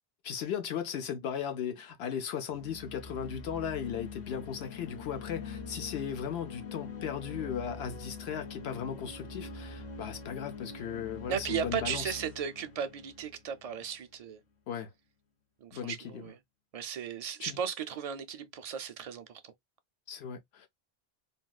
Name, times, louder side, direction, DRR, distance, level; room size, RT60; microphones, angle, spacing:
voice 1, 0.2-12.2 14.7-14.9 15.7-16.3 17.4-17.6 20.1-20.7, left 8 dB, 90° left, 0.9 m, -37 dB
sound 1, 2.5-14.0, left 4 dB, 50° left, 0.7 m, -44 dB
voice 2, 11.3-14.4 15.6-16.4 16.7-19.5, right 8 dB, 50° right, 0.5 m, -36 dB
3.4 x 2.3 x 2.3 m
omnidirectional pair, 1.0 m